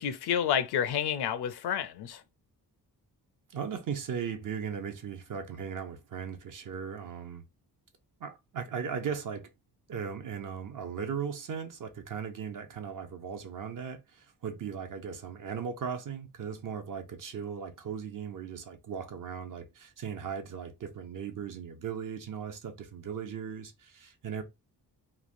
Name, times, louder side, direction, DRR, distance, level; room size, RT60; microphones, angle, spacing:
voice 1, 0.0-2.2, left 9 dB, 80° left, 0.5 m, -29 dB
voice 2, 3.5-7.4 8.2-9.5 9.9-24.4, right 7 dB, 55° right, 0.7 m, -37 dB
3.1 x 2.2 x 2.5 m
cardioid pair, 80°, 39 cm